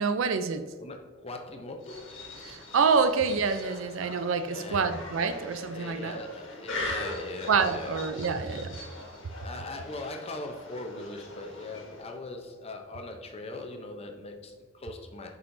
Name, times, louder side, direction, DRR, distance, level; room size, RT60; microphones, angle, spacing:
voice 1, 0.0-0.6 2.5-6.2 7.5-8.7, right 5 dB, 70° right, 0.4 m, -27 dB
voice 2, 0.8-2.5 4.5-5.0 5.7-8.0 9.4-15.4, left 2 dB, 30° left, 0.7 m, -40 dB
sound 1, 1.8-12.2, left 2 dB, 65° left, 1.6 m, -41 dB
6.9 x 5.5 x 2.7 m
head